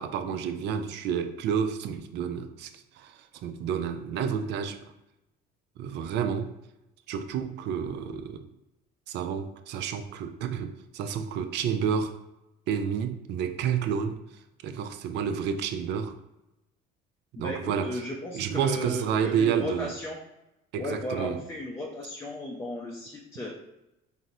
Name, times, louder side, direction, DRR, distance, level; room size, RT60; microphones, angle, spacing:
voice 1, 0.0-4.8 5.8-6.5 7.1-8.5 9.1-12.2 12.7-14.2 14.6-16.2 17.4-18.0 18.3-19.9 20.7-21.4, right 7 dB, 60° right, 9 dB, 0.4 m, -30 dB
voice 2, 17.4-20.2 20.7-23.6, left 1 dB, 15° left, -2 dB, 0.5 m, -35 dB
3.8 x 2.0 x 2.7 m, 0.93 s
supercardioid pair, 90°, 20 cm